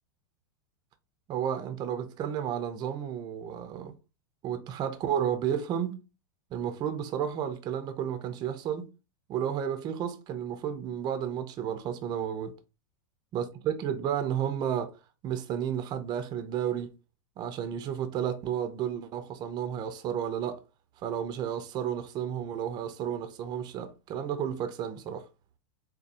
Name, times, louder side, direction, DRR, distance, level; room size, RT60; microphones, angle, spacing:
voice 1, 1.3-4.0 4.4-6.0 6.5-8.9 9.3-12.6 13.3-15.0 15.2-17.0 17.4-20.6 21.0-25.3, right 9 dB, 35° right, 0.6 m, -32 dB
4.1 x 2.2 x 2.5 m
hypercardioid pair, 105°, 12 cm